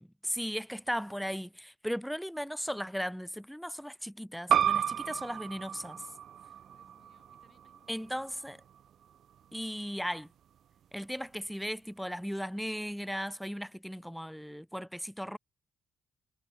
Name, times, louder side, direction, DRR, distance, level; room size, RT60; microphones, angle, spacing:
voice 1, 0.0-6.0 7.9-8.6 9.5-10.3 10.9-15.4, equal, ahead, 0.7 m, -37 dB
sound 1, 4.5-9.7, right 9 dB, 65° right, 0.4 m, -33 dB
voice 2, 6.6-8.1 13.8-14.2, left 5 dB, 40° left, 7.1 m, -70 dB
cardioid pair, 90°, 0 cm